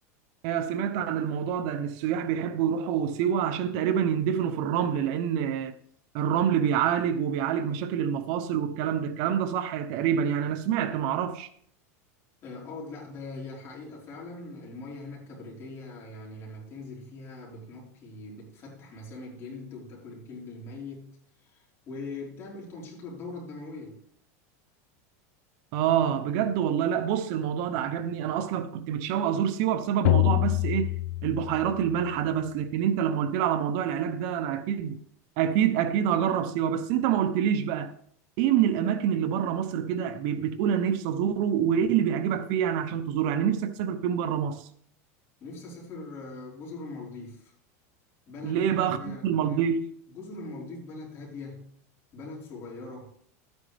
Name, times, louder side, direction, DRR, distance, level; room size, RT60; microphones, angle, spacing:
voice 1, 0.4-5.7 6.1-11.5 25.7-30.9 31.2-35.0 35.4-37.9 38.4-44.7 48.4-49.9, right 9 dB, 55° right, 0.7 m, -26 dB
voice 2, 12.4-24.0 45.4-47.5 48.3-49.7 50.1-51.8 52.1-53.1, left 3 dB, 30° left, 4.4 m, -41 dB
sound 1, 30.0-32.0, left 20 dB, 70° left, 0.4 m, -26 dB
12.5 x 9.5 x 3.4 m
supercardioid pair, 145°, 8 cm